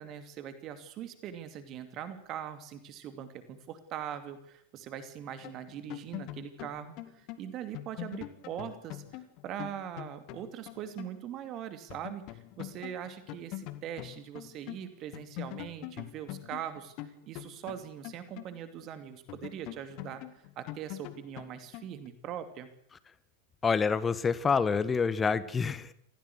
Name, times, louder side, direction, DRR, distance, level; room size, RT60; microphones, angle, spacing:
voice 1, 0.0-22.7, right 9 dB, 35° right, 10 dB, 2.6 m, -42 dB
sound 1, 5.4-11.2 11.4-11.5 11.9-14.8 15.1-18.9 19.3-22.1, left 15 dB, 40° left, 2.1 m, -43 dB
voice 2, 23.6-25.9, left 5 dB, 15° left, 15 dB, 1.4 m, -27 dB
28.0 x 16.5 x 8.3 m, 0.68 s
figure-of-eight pair, 90°, 0 cm